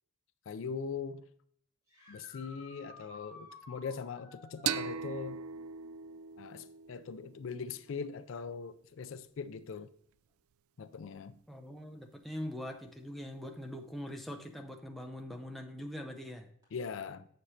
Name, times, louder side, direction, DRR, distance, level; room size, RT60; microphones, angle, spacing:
voice 1, 0.5-1.3 2.1-5.4 6.4-9.9 10.8-11.4 16.7-17.3, left 5 dB, 65° left, 0.4 m, -41 dB
sound 1, 1.9-4.9 8.2-8.3 10.3-10.4 16.6-16.7, left 2 dB, 15° right, 3.0 m, -53 dB
sound 2, 4.7-8.0, right 8 dB, 90° right, 0.3 m, -39 dB
voice 2, 11.5-16.5, equal, ahead, 0.5 m, -42 dB
7.6 x 6.7 x 2.8 m
head